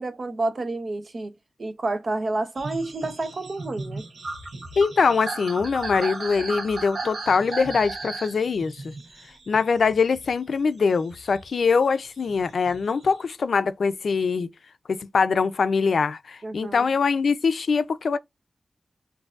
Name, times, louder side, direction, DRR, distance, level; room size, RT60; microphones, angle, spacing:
voice 1, 0.0-1.3 1.6-4.1 16.4-16.9, right 2 dB, 55° right, 0.7 m, -29 dB
sound 1, 2.6-10.6 11.0-13.2, right 3 dB, 80° right, 1.0 m, -36 dB
voice 2, 4.8-8.9 9.5-14.5 14.9-18.2, left 5 dB, 85° left, 0.4 m, -23 dB
6.2 x 2.6 x 2.4 m
wide cardioid pair, 85°, 0 cm